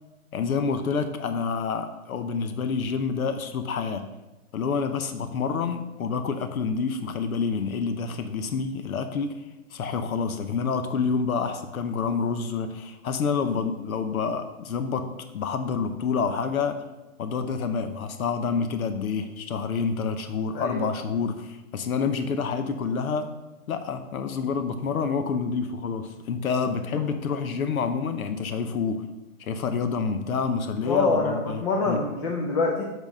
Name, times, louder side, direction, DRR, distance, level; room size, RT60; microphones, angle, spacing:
voice 1, 0.3-4.0 4.5-9.4 9.7-16.8 17.2-23.3 23.7-29.1 29.4-32.0, left 5 dB, 75° left, 8 dB, 0.8 m, -28 dB
voice 2, 20.5-20.9 30.8-32.8, left 3 dB, 20° left, 0 dB, 0.5 m, -25 dB
7.0 x 4.1 x 5.3 m, 1.1 s
hypercardioid pair, 140°, 43 cm